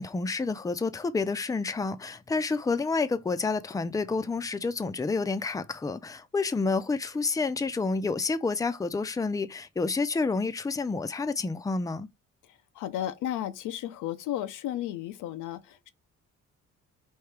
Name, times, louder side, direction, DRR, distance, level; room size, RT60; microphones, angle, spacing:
voice 1, 0.0-12.1, left 4 dB, 10° left, 0.5 m, -29 dB
voice 2, 12.4-15.9, left 12 dB, 90° left, 0.6 m, -34 dB
4.5 x 2.8 x 3.4 m
cardioid pair, 90°, 30 cm